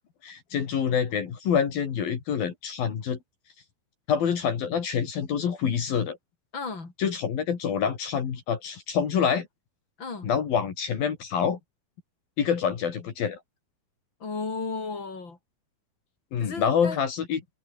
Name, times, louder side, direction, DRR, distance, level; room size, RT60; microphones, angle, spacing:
voice 1, 0.2-3.2 4.1-6.2 7.0-9.5 10.2-11.6 12.4-13.4 16.3-17.4, left 7 dB, 70° left, 4.7 m, -26 dB
voice 2, 6.5-6.9 10.0-10.3 14.2-15.4 16.4-17.0, left 4 dB, 30° left, 5.9 m, -34 dB
omnidirectional pair, 4.4 m